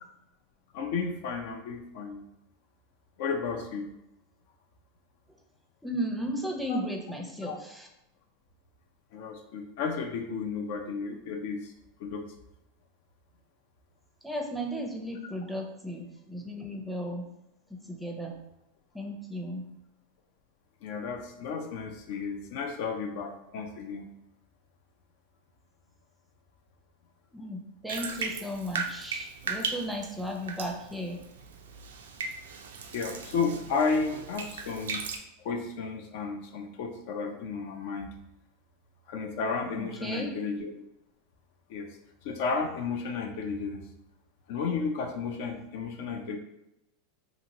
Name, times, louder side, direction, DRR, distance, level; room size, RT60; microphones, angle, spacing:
voice 1, 0.7-2.3 3.2-3.9 6.7-6.8 7.4-7.6 9.1-11.7 12.0-12.3 20.8-24.1 32.9-35.0 35.4-38.1 39.1-40.7 41.7-41.9 42.2-43.8 44.5-46.4, left 5 dB, 65° left, 4 dB, 0.4 m, -33 dB
voice 2, 5.8-7.9 14.2-17.3 17.7-18.4 18.9-19.6 27.3-31.2 39.8-40.3, equal, 5° right, 1 dB, 0.5 m, -35 dB
Bathtub (filling or washing), 27.9-35.2, right 5 dB, 85° right, 0.3 m, -37 dB
2.7 x 2.5 x 2.9 m, 0.85 s
hypercardioid pair, 110°, 0 cm